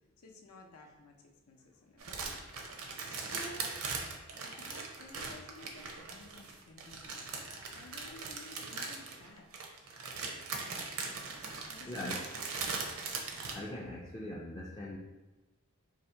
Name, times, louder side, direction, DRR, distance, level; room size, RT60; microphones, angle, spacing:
voice 1, 0.2-3.8 4.4-9.5 11.7-12.1, left 2 dB, 85° left, 2 dB, 0.6 m, -54 dB
sound 1, 2.0-13.5, right 4 dB, 70° right, 0.6 m, -40 dB
voice 2, 11.8-12.2 13.5-15.0, left 1 dB, 15° left, -5 dB, 0.3 m, -41 dB
2.7 x 2.7 x 4.4 m, 1.1 s
head